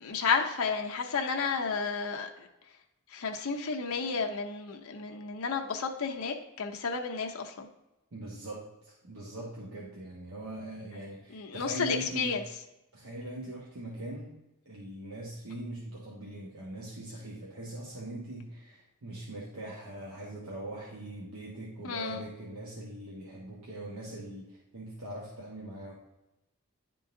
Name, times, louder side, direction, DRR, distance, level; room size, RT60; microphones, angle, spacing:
voice 1, 0.0-2.5 3.1-7.7 11.3-12.4 21.8-22.2, left 5 dB, 75° left, 3 dB, 0.6 m, -32 dB
voice 2, 8.1-12.4 12.9-14.4 14.6-25.9, right 1 dB, 80° right, -5 dB, 1.2 m, -41 dB
10.5 x 3.8 x 2.6 m, 0.96 s
head